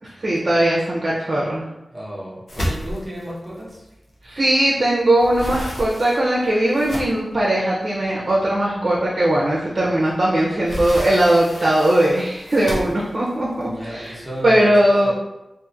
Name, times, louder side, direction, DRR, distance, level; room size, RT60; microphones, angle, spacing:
voice 1, 0.0-1.7 4.2-14.1 14.4-15.1, right 1 dB, 50° right, -6 dB, 0.6 m, -19 dB
voice 2, 1.9-3.9 13.6-14.7 15.0-15.1, equal, 10° right, -7 dB, 0.9 m, -33 dB
sound 1, 2.5-4.7 5.0-7.4 8.0-8.1 8.6-8.7 10.1-14.4, equal, 65° left, 0.7 m, -32 dB
2.8 x 2.5 x 2.4 m, 0.94 s
wide cardioid pair, 75°, 0 cm